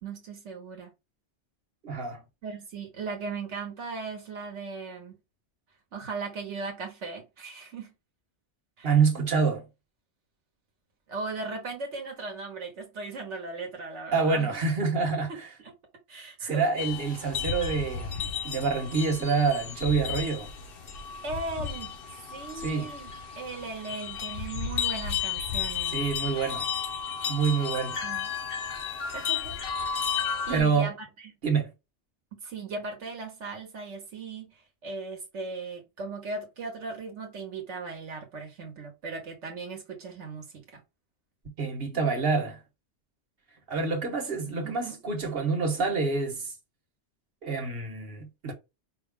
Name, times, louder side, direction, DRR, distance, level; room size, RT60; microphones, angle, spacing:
voice 1, 0.0-0.9 2.4-5.2 5.9-7.9 8.8-8.9 11.1-14.5 15.3-15.7 16.1-16.7 21.2-21.9 22.3-23.1 23.4-26.0 28.0-28.3 29.1-29.6 30.5-31.3 32.3-40.8 44.6-45.0, right 4 dB, 80° right, 1.3 m, -38 dB
voice 2, 1.8-2.2 8.8-9.6 14.1-15.3 16.4-20.5 22.6-22.9 25.9-26.6 27.3-28.0 30.5-30.9 31.4-31.7 41.6-42.6 43.7-46.5 47.4-48.5, right 5 dB, 55° right, 1.4 m, -27 dB
sound 1, 16.8-30.6, left 7 dB, 55° left, 1.0 m, -33 dB
5.1 x 2.3 x 3.6 m
omnidirectional pair, 1.2 m